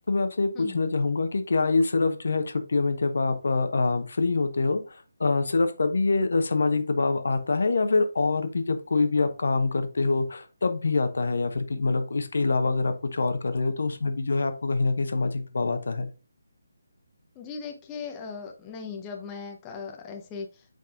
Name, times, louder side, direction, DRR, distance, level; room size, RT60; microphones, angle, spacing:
voice 1, 0.1-16.1, left 3 dB, 55° left, 8 dB, 0.9 m, -25 dB
voice 2, 17.4-20.7, left 5 dB, 15° left, 2 dB, 0.7 m, -38 dB
7.7 x 5.2 x 2.4 m, 0.34 s
figure-of-eight pair, 150°, 0 cm